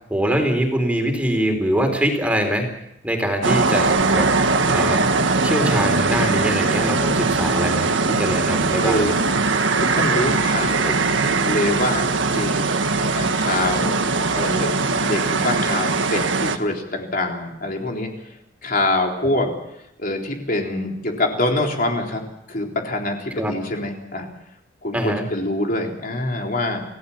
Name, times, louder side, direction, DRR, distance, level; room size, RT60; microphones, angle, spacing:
voice 1, 0.1-2.7 3.0-5.0 5.4-9.2 23.3-23.5 24.9-25.2, right 1 dB, 5° right, 4 dB, 4.1 m, -23 dB
sound 1, 3.4-16.6, right 3 dB, 85° right, 1.7 m, -20 dB
voice 2, 8.8-9.2 9.7-11.1 11.5-12.7 13.2-14.0 14.4-18.4 18.6-19.5 20.0-24.3 24.8-26.8, left 1 dB, 50° left, 1 dB, 3.7 m, -25 dB
28.5 x 16.5 x 7.3 m, 0.81 s
head